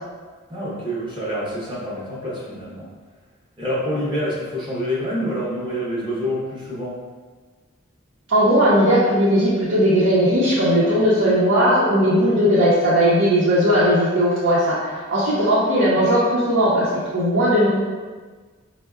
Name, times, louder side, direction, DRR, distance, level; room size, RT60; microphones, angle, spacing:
voice 1, 0.5-2.9 3.6-7.0, equal, 25° right, -6 dB, 0.7 m, -27 dB
voice 2, 8.3-14.8 15.1-17.8, equal, 70° right, -10 dB, 0.7 m, -17 dB
5.3 x 2.1 x 2.3 m, 1.4 s
head